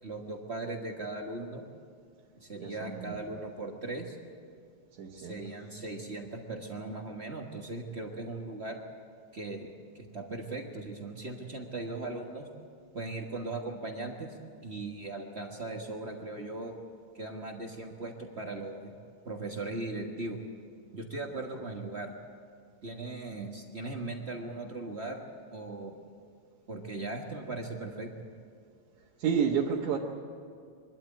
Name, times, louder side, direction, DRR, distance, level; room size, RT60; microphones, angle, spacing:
voice 1, 0.0-1.7 2.3-4.2 5.2-8.8 9.3-12.5 12.9-14.4 14.6-16.7 17.1-19.0 19.2-20.4 20.9-22.1 22.8-25.9 26.7-28.1, right 2 dB, 40° right, 2 dB, 1.0 m, -38 dB
voice 2, 2.6-3.2 5.0-5.4 29.2-30.0, right 7 dB, 85° right, -3 dB, 2.7 m, -30 dB
24.0 x 12.5 x 9.2 m, 2.1 s
omnidirectional pair, 3.3 m